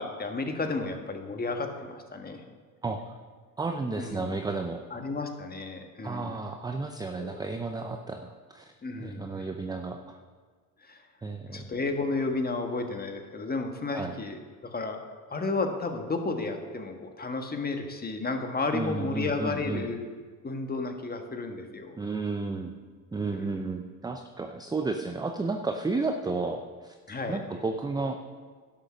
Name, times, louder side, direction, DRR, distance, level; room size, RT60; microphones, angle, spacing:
voice 1, 0.0-2.4 4.0-4.4 4.9-6.4 7.2-7.4 8.8-9.4 10.8-11.0 11.5-15.0 15.3-20.0 20.4-22.0 23.3-23.7 27.1-27.4, left 3 dB, 20° left, 5 dB, 1.5 m, -32 dB
voice 2, 2.8-3.2 3.6-4.8 6.0-8.6 9.0-10.2 11.2-11.7 13.9-14.2 18.7-19.9 22.0-22.8 23.1-26.9 27.3-28.2, right 3 dB, 10° right, 5 dB, 0.6 m, -32 dB
11.0 x 6.7 x 6.4 m, 1.5 s
hypercardioid pair, 80°, 49 cm